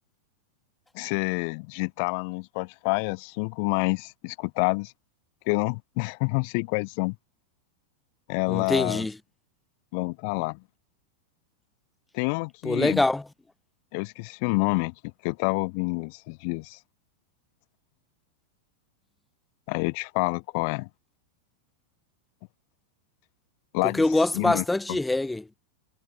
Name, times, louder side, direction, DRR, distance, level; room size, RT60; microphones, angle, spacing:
voice 1, 0.9-4.9 5.5-7.1 8.3-9.1 9.9-10.6 12.1-13.0 13.9-14.9 15.2-16.8 19.7-20.9 23.7-24.0 24.3-24.6, left 34 dB, 45° left, 1.5 m, -28 dB
voice 2, 8.5-9.2 12.6-13.2 23.8-25.5, left 2 dB, 5° left, 1.4 m, -24 dB
figure-of-eight pair, 90°, 0 cm